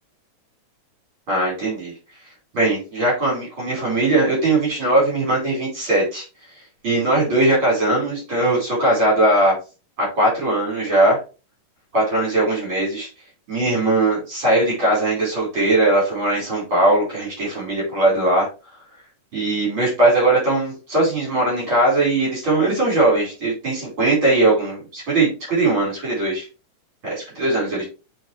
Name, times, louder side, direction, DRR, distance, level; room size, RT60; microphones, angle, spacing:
voice 1, 1.3-1.9 2.5-6.2 6.8-9.5 10.0-11.2 11.9-13.1 13.5-18.5 19.3-26.4 27.0-27.8, right 2 dB, 40° right, -6 dB, 5.6 m, -19 dB
9.0 x 4.3 x 3.4 m, 0.31 s
omnidirectional pair, 3.5 m